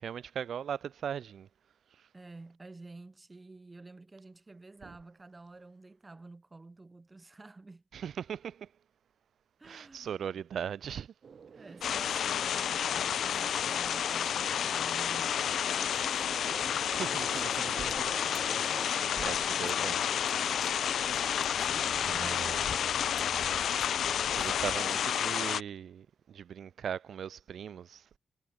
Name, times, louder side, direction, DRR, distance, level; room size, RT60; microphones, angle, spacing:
voice 1, 0.0-1.5 7.9-8.7 9.6-11.1 16.9-18.1 18.8-20.0 22.0-22.6 24.3-28.2, right 8 dB, 65° right, 0.5 m, -39 dB
voice 2, 2.1-7.8 9.6-10.4 11.5-17.1 18.6-20.0 21.7-22.8 24.8-25.0, right 3 dB, 20° right, 2.6 m, -51 dB
sound 1, 11.2-18.9 19.2-24.2, right 6 dB, 45° right, 2.3 m, -49 dB
sound 2, 11.8-25.6, left 9 dB, 75° left, 0.8 m, -30 dB
wide cardioid pair, 160°, 0 cm